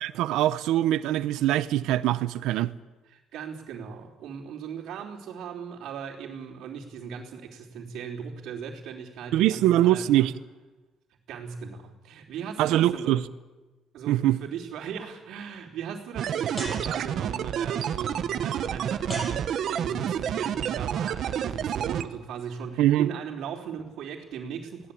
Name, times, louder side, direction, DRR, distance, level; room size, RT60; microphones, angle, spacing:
voice 1, 0.0-2.7 9.3-10.3 12.6-13.2 14.1-14.4 22.8-23.1, right 13 dB, 90° right, 14 dB, 0.8 m, -23 dB
voice 2, 3.1-10.3 11.3-13.3 13.9-24.9, right 7 dB, 65° right, -8 dB, 3.5 m, -38 dB
sound 1, 16.2-22.0, right 9 dB, 45° right, 1.0 m, -29 dB
sound 2, 16.6-17.4 19.1-20.1, right 1 dB, 10° left, 7.1 m, -38 dB
22.0 x 17.0 x 8.6 m, 1.2 s
cardioid pair, 180°, 0 cm